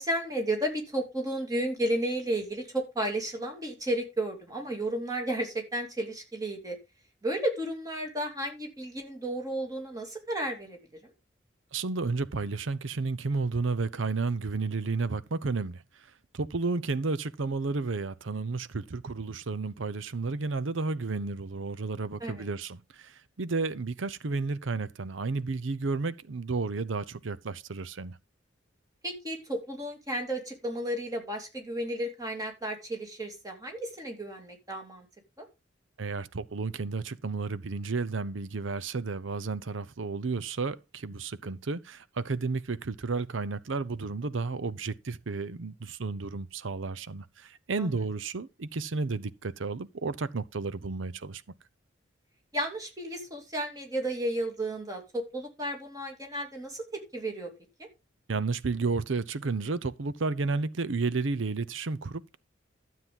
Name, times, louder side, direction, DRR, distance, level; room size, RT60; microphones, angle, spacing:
voice 1, 0.0-6.8 7.2-10.8 11.0-11.1 22.2-22.5 29.0-35.1 35.4-35.5 47.8-48.0 52.5-57.5 57.8-57.9, right 1 dB, 20° right, 2.8 m, -33 dB
voice 2, 11.7-15.8 16.3-28.2 36.0-51.4 58.3-62.4, right 4 dB, 85° right, 0.7 m, -32 dB
12.5 x 7.5 x 3.8 m
head